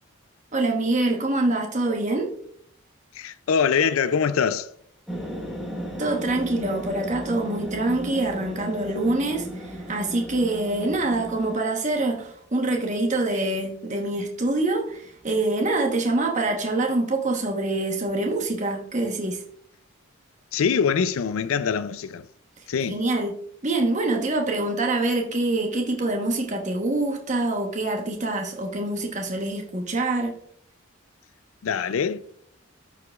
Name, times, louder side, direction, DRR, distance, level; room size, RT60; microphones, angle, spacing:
voice 1, 0.5-2.3 6.0-19.4 22.9-23.4 23.6-30.4, right 2 dB, 35° right, 1.1 m, -25 dB
voice 2, 3.1-4.7 20.5-22.3 22.7-23.0 31.6-32.2, left 6 dB, 70° left, 0.4 m, -23 dB
sound 1, 5.1-11.5, equal, ahead, 1.2 m, -35 dB
14.0 x 4.8 x 2.4 m
head